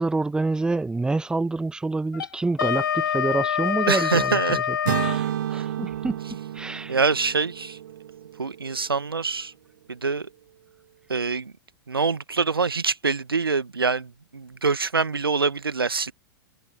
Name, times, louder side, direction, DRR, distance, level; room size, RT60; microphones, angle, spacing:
voice 1, 0.0-4.8 5.0-6.2 6.5-6.9, right 3 dB, 5° right, 1.4 m, -27 dB
Wind instrument woodwind instrument, 2.1-5.2, left 9 dB, 65° left, 4.3 m, -26 dB
voice 2, 3.9-4.6 6.9-7.8 8.4-9.5 9.9-10.3 11.1-11.5 11.9-16.1, right 4 dB, 80° right, 1.5 m, -25 dB
sound 1, 4.9-8.9, right 11 dB, 60° right, 2.2 m, -31 dB
figure-of-eight pair, 95°, 12 cm